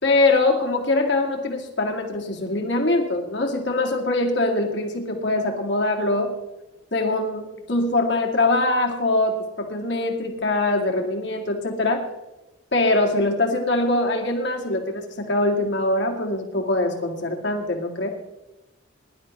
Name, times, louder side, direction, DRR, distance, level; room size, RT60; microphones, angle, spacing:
voice 1, 0.0-6.3 6.9-12.1 12.7-18.1, left 2 dB, 65° left, 1 dB, 2.2 m, -23 dB
21.5 x 11.5 x 3.2 m, 0.99 s
head